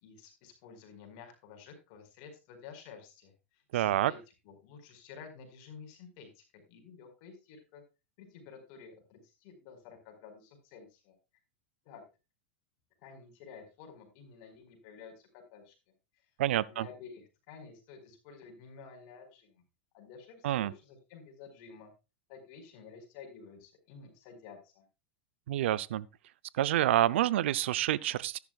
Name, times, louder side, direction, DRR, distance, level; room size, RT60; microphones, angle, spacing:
voice 1, 0.0-3.3 3.7-4.2 4.4-7.8 8.2-11.1 11.8-12.0 13.0-15.7 16.7-19.6 19.9-21.9 22.3-24.8, left 6 dB, 55° left, 4.7 m, -51 dB
voice 2, 3.7-4.1 16.4-16.9 20.4-20.7 25.5-26.1 26.5-28.4, right 13 dB, 75° right, 0.6 m, -28 dB
14.0 x 11.0 x 2.4 m
hypercardioid pair, 120°, 7 cm